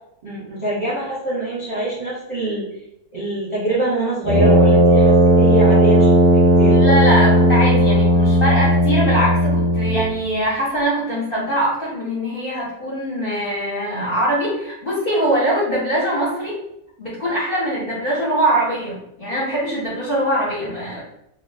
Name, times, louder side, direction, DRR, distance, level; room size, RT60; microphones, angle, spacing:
voice 1, 0.2-2.7 3.1-6.8, right 1 dB, 25° right, -8 dB, 0.8 m, -25 dB
Brass instrument, 4.2-10.1, equal, 45° right, 0.4 m, -14 dB
voice 2, 6.7-16.6 17.0-21.0, right 1 dB, 45° left, -8 dB, 0.8 m, -22 dB
2.3 x 2.3 x 3.3 m, 0.81 s
omnidirectional pair, 1.6 m